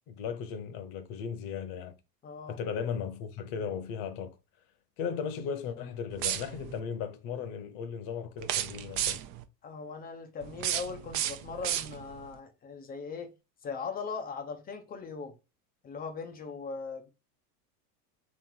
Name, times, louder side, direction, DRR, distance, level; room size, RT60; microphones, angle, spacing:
voice 1, 0.1-1.9 2.5-4.3 5.0-9.2, left 7 dB, 45° left, 0.9 m, -36 dB
voice 2, 2.2-2.6 9.6-13.3 13.6-15.3 15.8-17.1, left 5 dB, 20° left, 0.4 m, -39 dB
sound 1, 6.1-6.8 8.4-9.4 10.4-12.3, right 12 dB, 40° right, 0.4 m, -33 dB
3.7 x 3.1 x 3.7 m
supercardioid pair, 125°, 48 cm